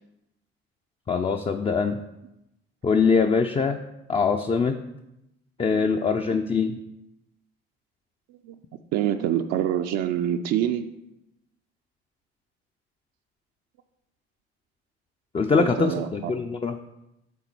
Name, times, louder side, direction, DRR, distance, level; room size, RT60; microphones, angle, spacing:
voice 1, 1.1-2.0 2.8-3.8 4.1-4.8 5.6-6.8 15.3-16.8, left 5 dB, 20° left, 5 dB, 0.4 m, -23 dB
voice 2, 8.9-10.9 15.6-16.3, right 10 dB, 60° right, 6 dB, 0.5 m, -26 dB
7.0 x 3.8 x 4.4 m, 0.90 s
hypercardioid pair, 50°, 31 cm